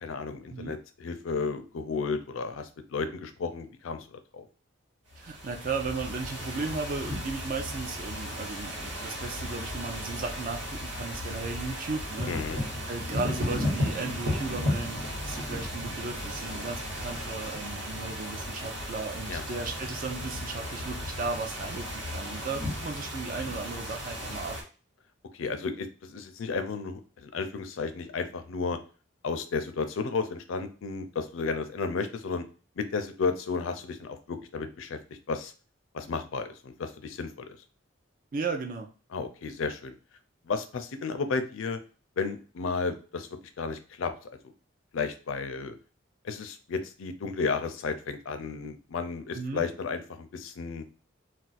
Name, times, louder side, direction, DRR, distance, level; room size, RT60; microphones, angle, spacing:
voice 1, 0.0-4.5 12.3-12.6 16.4-16.6 19.3-19.4 25.3-28.8 29.2-32.4 32.8-35.5 35.9-37.6 39.1-39.9 40.5-41.8 42.2-43.3 43.6-44.1 44.9-45.8 46.2-50.8, left 4 dB, 80° left, 9 dB, 0.4 m, -33 dB
sound 1, 5.1-24.6, equal, 70° right, 1.4 m, -35 dB
voice 2, 5.2-12.3 12.9-24.6 38.3-38.9 49.3-49.6, right 4 dB, 45° right, 4 dB, 0.4 m, -35 dB
2.4 x 2.2 x 4.0 m, 0.36 s
head